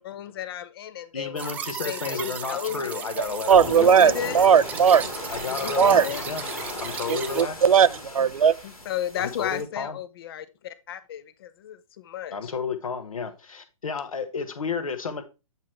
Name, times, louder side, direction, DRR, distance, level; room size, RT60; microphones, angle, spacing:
voice 1, 0.0-1.5 1.8-3.0 3.7-4.5 5.5-6.2 8.6-12.5, left 10 dB, 40° left, 0.7 m, -34 dB
voice 2, 1.1-4.1 5.3-6.4 6.8-7.7 9.2-10.0 12.3-15.2, left 5 dB, 70° left, 1.3 m, -32 dB
sound 1, 1.4-7.4, right 7 dB, 10° right, 0.4 m, -37 dB
sound 2, 3.2-9.6, left 2 dB, 90° left, 2.1 m, -36 dB
voice 3, 3.5-5.1 5.8-6.1 7.1-8.5, right 7 dB, 75° right, 0.4 m, -18 dB
8.3 x 4.6 x 3.2 m
figure-of-eight pair, 130°, 18 cm